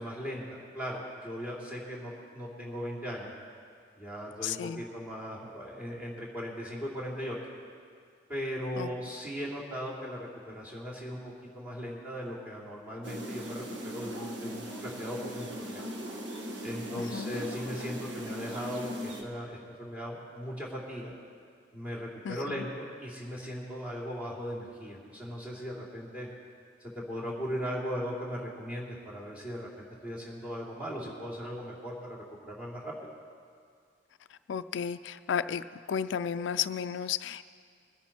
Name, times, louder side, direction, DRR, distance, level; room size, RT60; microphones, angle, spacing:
voice 1, 0.0-3.3 4.0-7.4 8.3-11.2 11.5-15.8 16.6-21.1 21.7-26.3 26.8-32.9, equal, 10° right, -4 dB, 2.9 m, -38 dB
voice 2, 4.4-4.8 8.8-8.9 17.0-17.3 22.2-22.6 34.3-37.5, left 8 dB, 85° left, 12 dB, 0.4 m, -33 dB
sound 1, 13.0-19.2, equal, 80° right, 1.4 m, -39 dB
sound 2, 13.7-15.0 16.8-18.3, left 1 dB, 25° left, 1.7 m, -53 dB
21.5 x 10.5 x 4.4 m, 2.2 s
head